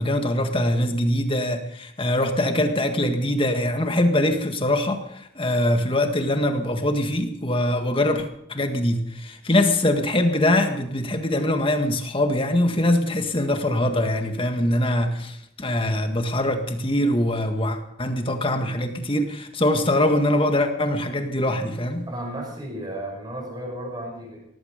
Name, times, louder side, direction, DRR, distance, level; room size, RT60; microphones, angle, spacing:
voice 1, 0.0-22.1, left 1 dB, 25° left, 6 dB, 1.8 m, -23 dB
voice 2, 22.1-24.5, right 1 dB, 20° right, 1 dB, 5.7 m, -34 dB
18.0 x 15.5 x 5.2 m, 0.75 s
head